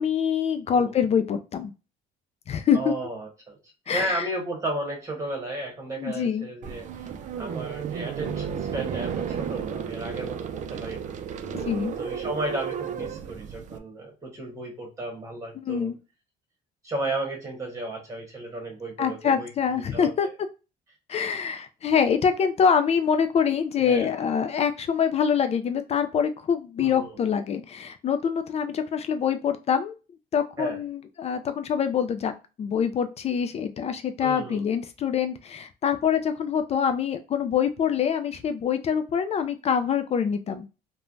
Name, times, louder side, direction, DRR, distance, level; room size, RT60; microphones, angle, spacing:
voice 1, 0.0-1.7 2.5-2.9 3.9-4.3 6.0-6.5 11.5-11.9 15.7-16.0 19.0-20.3 21.1-30.0 30.3-40.7, left 7 dB, 40° left, 9 dB, 0.4 m, -25 dB
voice 2, 2.7-3.5 3.9-7.1 7.4-11.1 12.0-15.9 16.8-19.5 19.9-20.3 23.8-24.2 26.8-27.1 30.6-30.8 34.2-34.6, right 2 dB, 20° right, 1 dB, 1.2 m, -34 dB
sound 1, 6.6-13.8, right 8 dB, 45° right, 0.4 m, -33 dB
3.1 x 2.2 x 2.6 m, 0.31 s
cardioid pair, 110°, 17 cm